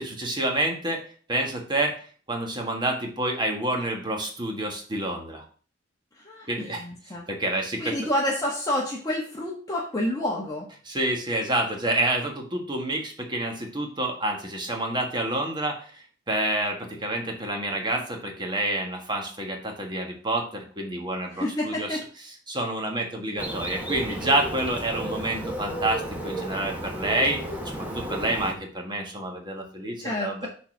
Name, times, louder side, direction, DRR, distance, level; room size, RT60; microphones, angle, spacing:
voice 1, 0.0-5.4 6.5-6.8 7.3-8.0 10.8-15.9 16.3-22.0 22.5-27.4 27.6-30.5, right 1 dB, 25° right, 2 dB, 1.6 m, -28 dB
voice 2, 6.2-7.3 7.8-10.7 21.3-22.0 30.0-30.5, left 1 dB, 20° left, -3 dB, 1.3 m, -29 dB
Bird, 23.4-28.5, right 1 dB, 10° right, 1.3 m, -33 dB
6.7 x 4.2 x 6.2 m, 0.42 s
head